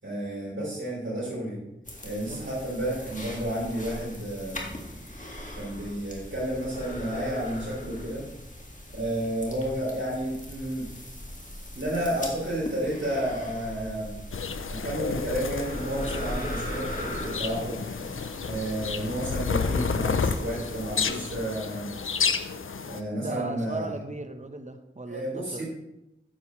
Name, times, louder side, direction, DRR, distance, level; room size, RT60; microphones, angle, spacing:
voice 1, 0.0-1.6 2.0-4.7 5.6-8.3 8.9-10.9 11.7-14.1 14.7-17.8 18.4-21.9 22.9-23.8 25.1-25.6, right 1 dB, 70° right, -9 dB, 3.5 m, -31 dB
sound 1, 1.9-21.1, left 1 dB, 40° left, 1.8 m, -40 dB
sound 2, 14.3-23.0, left 5 dB, 80° left, 0.5 m, -31 dB
voice 2, 23.1-25.6, right 2 dB, 35° right, 8 dB, 0.9 m, -37 dB
10.0 x 7.2 x 3.1 m, 0.93 s
wide cardioid pair, 45°, 21 cm